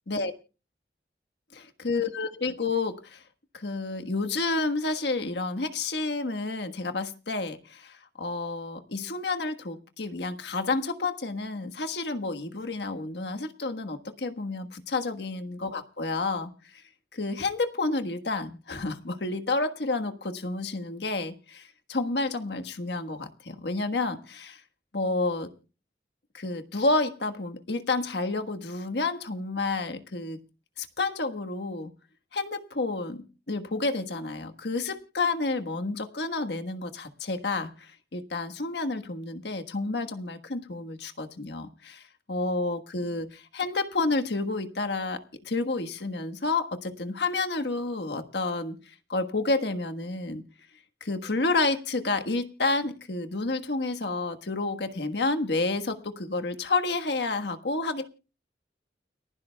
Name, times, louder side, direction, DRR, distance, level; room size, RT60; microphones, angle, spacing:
voice 1, 1.8-3.2 3.5-16.8 17.1-24.6 24.9-25.5 26.3-30.4 30.8-31.9 32.3-42.0 42.3-50.4 51.0-58.1, left 3 dB, 80° left, 7 dB, 1.4 m, -30 dB
30.0 x 11.5 x 2.3 m, 0.32 s
head